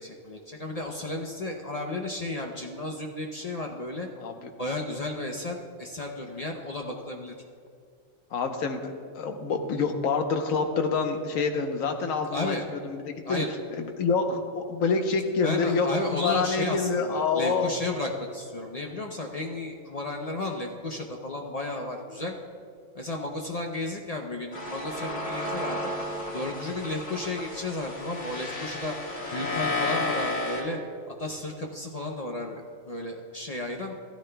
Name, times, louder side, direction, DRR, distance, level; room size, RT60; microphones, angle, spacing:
voice 1, 0.0-4.1 4.6-7.3 12.2-12.7 13.2-13.5 15.4-22.3 22.9-25.8 26.3-29.0 29.3-30.8 31.1-34.0, left 2 dB, 40° left, 1 dB, 0.6 m, -33 dB
voice 2, 8.3-13.0 13.3-13.4 13.8-17.8, left 4 dB, 75° left, 5 dB, 1.3 m, -27 dB
sound 1, 24.5-30.6, left 2 dB, 60° left, 2.1 m, -32 dB
15.0 x 13.0 x 2.2 m, 2.2 s
omnidirectional pair, 1.4 m